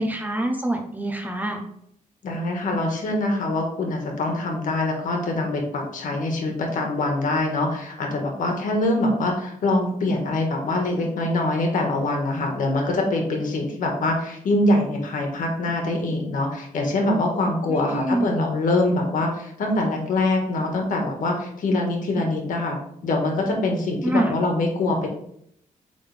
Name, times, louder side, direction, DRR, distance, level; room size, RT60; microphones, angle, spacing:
voice 1, 0.0-1.6 17.7-18.4 24.0-24.4, right 1 dB, 10° right, 2 dB, 0.9 m, -25 dB
voice 2, 2.2-22.8 23.0-25.1, left 2 dB, 75° left, 1 dB, 1.7 m, -24 dB
8.5 x 3.8 x 3.5 m, 0.71 s
wide cardioid pair, 145°, 14 cm